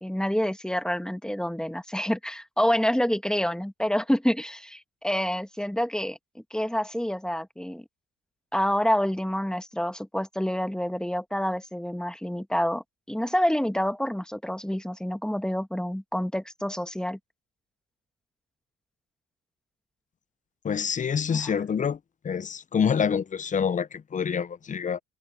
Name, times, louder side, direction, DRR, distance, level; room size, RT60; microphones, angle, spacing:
voice 1, 0.0-6.2 6.5-7.8 8.5-17.2 21.3-21.5, equal, ahead, 1.2 m, -27 dB
voice 2, 20.6-22.0 22.2-25.0, left 7 dB, 25° left, 0.4 m, -26 dB
cardioid pair, 90°, 30 cm